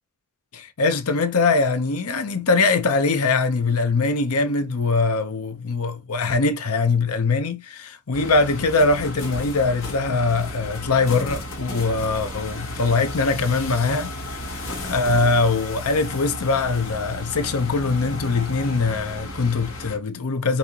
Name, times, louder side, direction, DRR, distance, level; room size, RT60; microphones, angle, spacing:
voice 1, 0.5-20.6, left 3 dB, 80° left, 0.8 m, -22 dB
sound 1, 8.1-20.0, left 1 dB, 60° left, 1.6 m, -34 dB
5.4 x 2.8 x 2.9 m
head